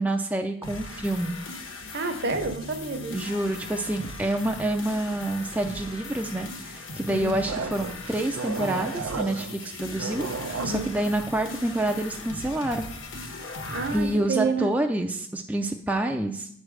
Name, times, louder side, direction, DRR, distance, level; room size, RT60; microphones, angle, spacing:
voice 1, 0.0-1.4 3.1-12.9 13.9-16.5, right 1 dB, 5° right, 3 dB, 0.3 m, -28 dB
sound 1, 0.6-14.2, left 2 dB, 65° left, 1.1 m, -39 dB
voice 2, 1.9-3.2 7.1-7.4 10.6-10.9 13.7-14.7, right 4 dB, 50° right, 7 dB, 0.8 m, -29 dB
sound 2, 7.5-10.8, right 4 dB, 85° right, 0.7 m, -34 dB
8.8 x 3.3 x 6.1 m, 0.68 s
head